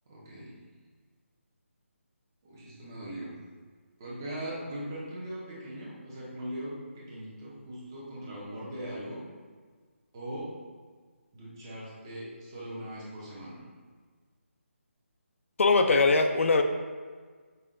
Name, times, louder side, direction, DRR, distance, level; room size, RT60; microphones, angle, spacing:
voice 1, 0.1-0.6 2.4-3.3 4.0-9.2 10.1-10.5 11.3-13.6, right 1 dB, 15° right, -7 dB, 0.6 m, -40 dB
voice 2, 15.6-16.6, left 3 dB, 70° left, 6 dB, 0.4 m, -21 dB
5.5 x 2.2 x 3.6 m, 1.5 s
hypercardioid pair, 175°, 7 cm